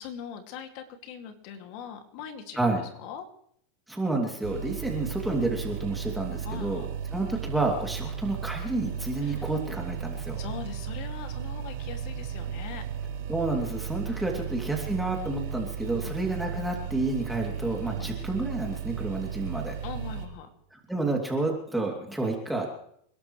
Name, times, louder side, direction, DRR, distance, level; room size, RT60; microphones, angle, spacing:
voice 1, 0.0-3.3 6.4-6.9 9.2-9.5 10.4-12.8 14.3-14.4 15.9-16.2 17.9-18.1 19.8-20.5, left 8 dB, 60° left, 6 dB, 2.3 m, -41 dB
voice 2, 3.9-6.8 7.1-10.4 13.3-19.7 20.7-22.7, right 2 dB, 5° right, 0 dB, 2.8 m, -30 dB
sound 1, 4.4-20.3, right 7 dB, 60° right, 5.0 m, -35 dB
28.5 x 12.0 x 3.2 m, 0.69 s
supercardioid pair, 125°, 0 cm